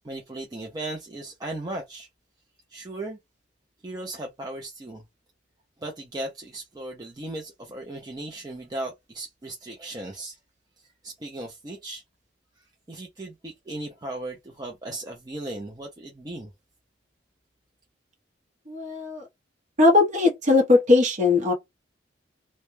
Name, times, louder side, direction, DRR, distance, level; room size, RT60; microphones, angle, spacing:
voice 1, 0.0-2.1 2.7-3.2 3.8-5.0 5.8-10.4 11.0-12.0 12.9-16.5, right 2 dB, 20° right, 0.4 m, -36 dB
voice 2, 18.7-19.2 19.8-21.5, left 3 dB, 40° right, 0.8 m, -19 dB
2.2 x 2.1 x 3.0 m
head